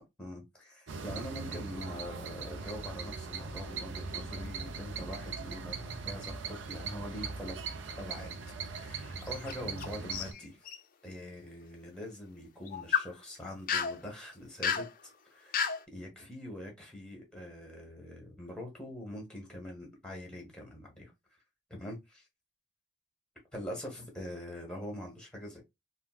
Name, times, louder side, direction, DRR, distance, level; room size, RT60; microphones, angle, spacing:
voice 1, 0.2-7.6 8.0-8.3 8.6-10.7 11.0-14.9 15.3-21.1 21.7-22.2 23.5-25.6, left 1 dB, 5° left, 1.1 m, -44 dB
sound 1, 0.9-10.3, right 4 dB, 80° right, 0.5 m, -40 dB
sound 2, 9.2-9.9 10.1-10.8 12.7-13.1 13.7-14.0 14.6-14.9 15.5-15.8, left 6 dB, 45° left, 0.4 m, -31 dB
3.5 x 2.1 x 2.3 m
head